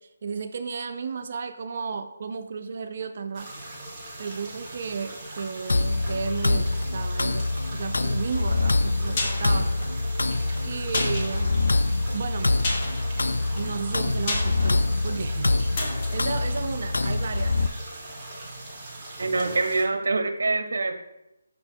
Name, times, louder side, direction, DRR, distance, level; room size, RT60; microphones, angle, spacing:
voice 1, 0.2-3.5 4.2-9.7 10.6-11.6 12.1-12.5 13.6-17.6, right 5 dB, 45° right, 9 dB, 0.4 m, -33 dB
sound 1, 3.3-19.8, right 1 dB, 15° right, 1.2 m, -40 dB
sound 2, 5.7-17.7, left 2 dB, 90° left, 0.3 m, -25 dB
sound 3, 9.1-17.6 17.9-18.0, left 2 dB, 30° left, 1.0 m, -35 dB
voice 2, 19.2-21.0, right 3 dB, 65° right, 8 dB, 0.8 m, -25 dB
6.4 x 4.3 x 4.4 m, 0.91 s
hypercardioid pair, 170°, 0 cm